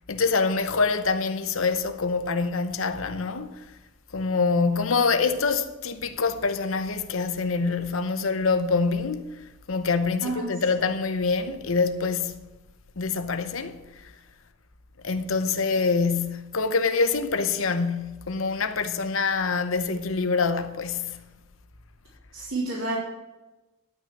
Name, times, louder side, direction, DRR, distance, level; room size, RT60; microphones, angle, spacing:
voice 1, 0.1-3.6 4.1-12.4 13.0-13.8 15.0-21.2, left 4 dB, 80° left, 0.9 m, -25 dB
voice 2, 22.3-23.0, right 2 dB, 85° right, 3.4 m, -29 dB
12.5 x 6.1 x 7.2 m
head